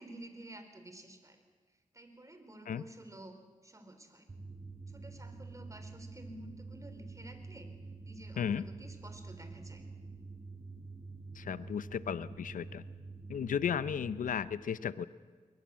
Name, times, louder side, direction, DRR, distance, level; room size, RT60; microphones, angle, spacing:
voice 1, 0.0-1.4 1.9-4.3 4.9-7.7 8.0-9.8, right 1 dB, 25° right, 8 dB, 3.9 m, -51 dB
sound 1, 4.3-14.3, right 3 dB, 45° right, 6.7 m, -47 dB
voice 2, 8.4-8.7 11.3-12.8 13.3-15.1, left 8 dB, 85° left, 16 dB, 0.6 m, -34 dB
22.0 x 19.0 x 7.5 m, 1.5 s
cardioid pair, 50°, 13 cm